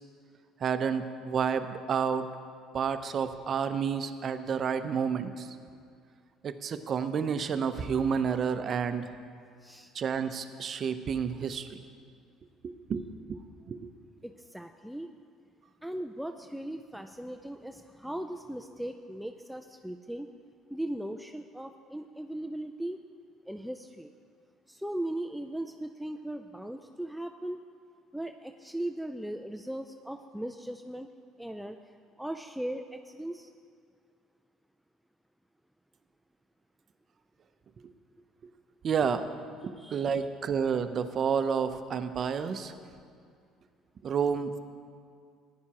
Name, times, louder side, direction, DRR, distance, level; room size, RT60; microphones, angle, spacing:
voice 1, 0.6-2.3 2.7-5.5 6.4-9.1 9.9-11.8 12.6-13.4 13.7-13.9 38.8-39.3 39.6-42.7 44.0-44.6, right 6 dB, 45° right, 10 dB, 0.6 m, -30 dB
voice 2, 9.6-9.9 14.2-15.1 15.8-20.3 20.7-23.0 23.5-24.1 24.7-27.6 28.1-31.1 31.4-31.8 32.2-33.5 39.8-40.3, right 1 dB, ahead, 6 dB, 0.4 m, -38 dB
15.0 x 10.5 x 2.9 m, 2.3 s
supercardioid pair, 85°, 0 cm